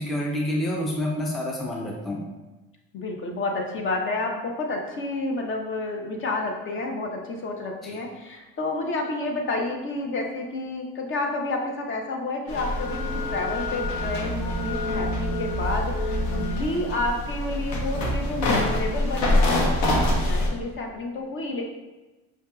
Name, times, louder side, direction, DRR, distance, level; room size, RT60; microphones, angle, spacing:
voice 1, 0.0-2.2 7.8-8.0, left 1 dB, ahead, -2 dB, 0.4 m, -28 dB
voice 2, 2.9-19.6 20.2-21.7, left 2 dB, 40° left, 2 dB, 0.7 m, -30 dB
sound 1, 12.5-20.5, left 1 dB, 70° left, 0.9 m, -25 dB
4.8 x 2.6 x 2.3 m, 1.1 s
cardioid pair, 105°, 30 cm